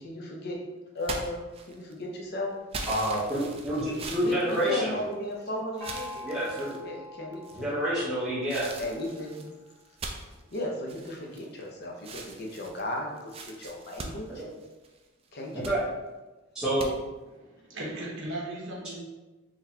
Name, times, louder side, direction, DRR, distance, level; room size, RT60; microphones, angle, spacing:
voice 1, 0.0-0.6 0.9-1.4 1.7-2.6 4.2-6.4 6.8-7.7 8.5-9.5 10.5-14.4 15.3-15.7, left 1 dB, 50° left, -1 dB, 0.7 m, -35 dB
sound 1, 1.0-2.0 2.7-5.3 5.8-6.8 7.4-7.9 8.5-11.7 12.0-15.0 15.4-15.8 16.8-16.9, right 3 dB, 30° right, 0.3 m, -41 dB
voice 2, 2.9-5.0 6.2-6.8 7.5-8.7 14.4-14.5 15.5-15.8 16.5-16.9, right 1 dB, 5° right, -11 dB, 0.8 m, -28 dB
Gong, 5.8-9.3, left 1 dB, 15° left, 1.1 m, -44 dB
voice 3, 17.3-19.0, right 1 dB, 60° right, -3 dB, 1.0 m, -37 dB
3.9 x 3.1 x 2.7 m, 1.1 s
head